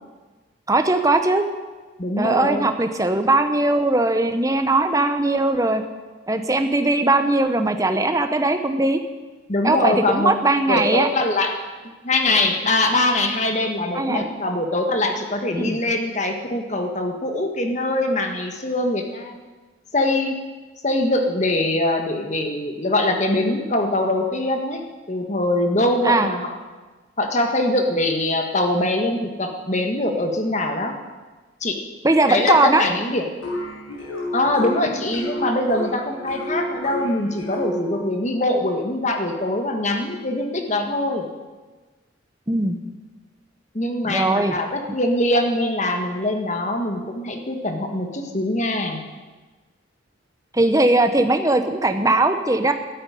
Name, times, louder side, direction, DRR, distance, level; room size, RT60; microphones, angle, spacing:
voice 1, 0.7-1.4 2.2-5.8 6.3-9.0 9.6-11.1 13.9-14.2 15.5-15.8 26.0-26.3 32.0-32.8 42.5-42.8 44.1-44.5 50.5-52.7, right 2 dB, 15° right, 7 dB, 0.9 m, -19 dB
voice 2, 2.0-2.6 9.5-10.3 10.7-11.5 12.0-19.4 19.9-20.4 20.8-24.8 25.1-26.6 27.2-30.9 31.6-31.8 32.3-33.2 34.3-41.3 43.7-49.0, left 1 dB, 35° left, 4 dB, 1.6 m, -23 dB
sound 1, 33.4-38.2, equal, 80° left, 5.7 m, -30 dB
13.0 x 8.9 x 9.9 m, 1.3 s
head